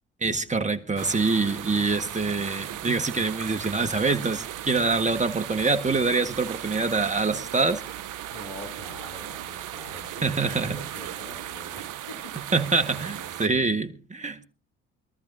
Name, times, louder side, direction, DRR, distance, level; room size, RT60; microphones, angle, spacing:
voice 1, 0.2-7.8 10.2-10.8 12.5-14.4, right 3 dB, 20° right, 1.7 m, -25 dB
sound 1, 1.0-13.5, right 12 dB, 60° right, 1.0 m, -37 dB
voice 2, 8.3-12.6 12.9-13.4, left 1 dB, 80° left, 3.3 m, -44 dB
23.5 x 14.0 x 2.8 m
hypercardioid pair, 50°, 36 cm